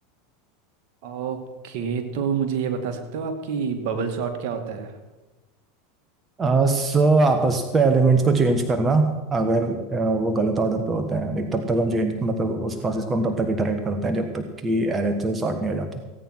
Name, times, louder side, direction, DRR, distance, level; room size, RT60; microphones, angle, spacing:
voice 1, 1.0-1.4 1.6-4.9, right 6 dB, 60° right, 5 dB, 2.2 m, -27 dB
voice 2, 6.4-15.9, right 3 dB, 20° right, 6 dB, 1.3 m, -22 dB
16.0 x 9.2 x 6.0 m, 1.2 s
hypercardioid pair, 110°, 0 cm